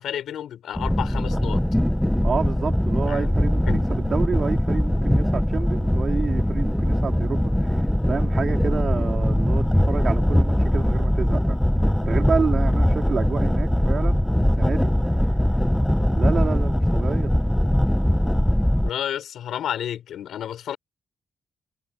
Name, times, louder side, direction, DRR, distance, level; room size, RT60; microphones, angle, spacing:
voice 1, 0.0-1.6 3.1-3.3 3.7-3.8 18.8-20.8, left 10 dB, 75° left, 5.3 m, -31 dB
Craft interior ambience, 0.8-18.9, equal, 5° left, 0.7 m, -21 dB
voice 2, 2.2-11.6 12.0-15.0 16.1-17.3, right 6 dB, 40° right, 3.8 m, -29 dB
wide cardioid pair, 170°, 0 cm